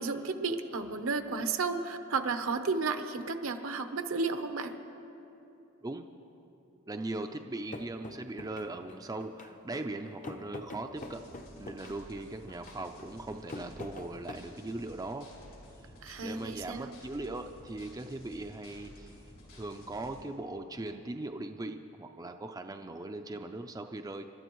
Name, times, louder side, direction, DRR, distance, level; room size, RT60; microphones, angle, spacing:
voice 1, 0.0-4.7 16.0-16.9, right 4 dB, 70° right, 7 dB, 0.8 m, -33 dB
voice 2, 6.9-11.2 11.6-15.3 16.2-19.2 19.5-24.2, right 2 dB, 20° right, 5 dB, 0.4 m, -39 dB
sound 1, 7.7-14.4, left 2 dB, 40° left, 0.7 m, -45 dB
sound 2, 11.0-20.2, left 1 dB, 75° left, 4.2 m, -53 dB
29.0 x 12.0 x 3.1 m, 2.9 s
head